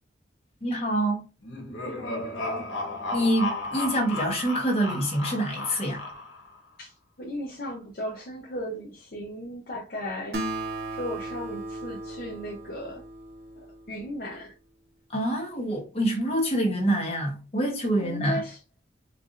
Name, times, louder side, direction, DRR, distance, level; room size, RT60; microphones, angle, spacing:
voice 1, 0.6-1.2 3.1-6.0 15.1-18.4, right 1 dB, 30° left, 1.0 m, -26 dB
sound 1, 1.4-6.5, left 2 dB, 85° left, 1.1 m, -34 dB
voice 2, 1.8-2.7 6.8-10.4 10.9-13.0 13.9-14.5 18.0-18.6, equal, 50° left, 0.7 m, -36 dB
Acoustic guitar, 10.3-14.1, right 2 dB, 55° right, 0.9 m, -36 dB
4.6 x 2.5 x 2.5 m
head